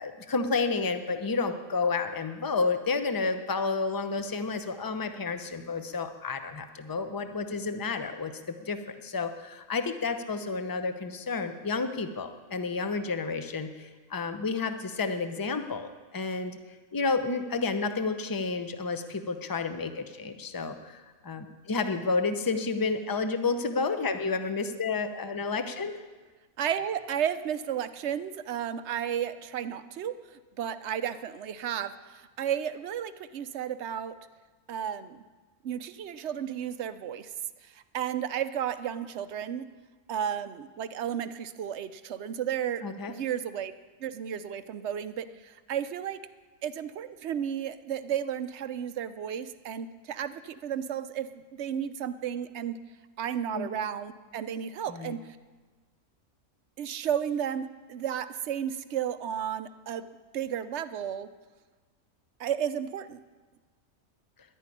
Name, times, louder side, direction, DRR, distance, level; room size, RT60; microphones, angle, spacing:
voice 1, 0.0-8.3 8.6-16.6 16.9-26.0 42.8-43.1 53.5-53.7 54.9-55.2, left 4 dB, 20° left, 8 dB, 0.6 m, -30 dB
voice 2, 26.6-30.1 30.6-34.1 34.7-35.2 35.6-37.3 37.9-39.6 40.1-42.8 43.1-43.7 44.0-46.2 46.6-52.8 53.2-55.2 56.8-60.1 60.3-61.3 62.4-63.2, right 9 dB, 60° right, 12 dB, 0.9 m, -33 dB
11.0 x 10.0 x 9.8 m, 1.3 s
omnidirectional pair, 1.5 m